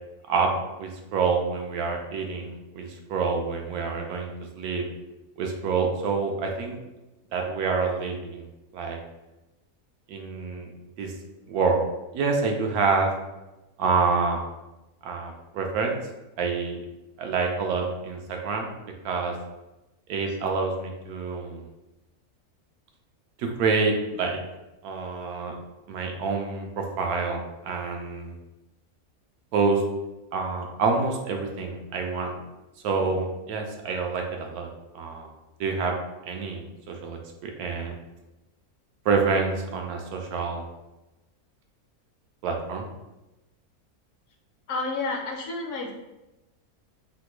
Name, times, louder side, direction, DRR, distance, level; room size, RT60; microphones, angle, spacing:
voice 1, 0.8-4.3 4.5-4.8 5.4-6.8 7.3-8.5 8.7-9.0 10.1-10.7 11.0-11.1 11.5-11.8 12.1-13.1 13.8-14.4 15.0-16.0 16.4-16.8 17.2-18.7 19.0-19.3 20.1-21.7 23.4-24.4 24.8-25.6 25.9-28.3 29.5-29.8 30.3-32.4 32.8-35.3 35.6-35.9 36.3-37.9 39.0-40.6 42.4-42.9, right 4 dB, 85° right, 2 dB, 1.1 m, -27 dB
voice 2, 44.7-45.9, left 3 dB, 65° left, 1 dB, 0.8 m, -30 dB
3.3 x 2.1 x 2.9 m, 0.99 s
omnidirectional pair, 1.5 m